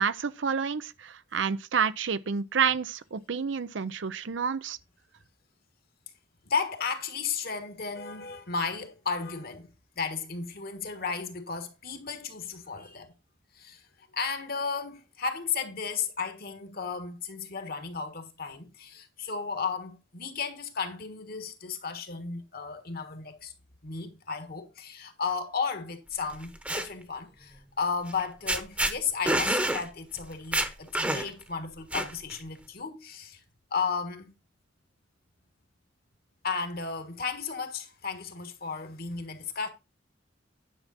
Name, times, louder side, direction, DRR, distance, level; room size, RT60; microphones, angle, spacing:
voice 1, 0.0-4.8, right 6 dB, 75° right, 0.6 m, -29 dB
voice 2, 6.4-9.7 9.9-13.1 13.5-13.8 14.1-23.5 23.8-33.4 33.7-34.3 36.4-39.7, left 5 dB, 55° left, 1.5 m, -34 dB
sound 1, 26.3-26.9 28.1-28.2 28.5-28.9 29.3-29.8 30.2-30.3 30.5-31.4 31.9-32.4, right 1 dB, 5° right, 1.0 m, -27 dB
10.5 x 5.9 x 4.1 m
head